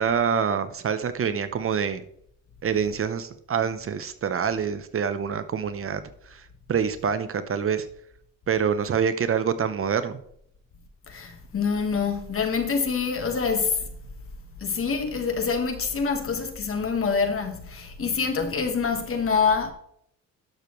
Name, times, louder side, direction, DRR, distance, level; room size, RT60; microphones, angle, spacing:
voice 1, 0.0-2.0 2.6-6.0 6.3-6.4 6.7-7.9 8.5-10.2, right 7 dB, 45° right, 0.8 m, -26 dB
voice 2, 11.1-13.8 14.6-19.7, left 5 dB, 45° left, 1.5 m, -26 dB
11.5 x 6.9 x 3.1 m
cardioid pair, 115°, 32 cm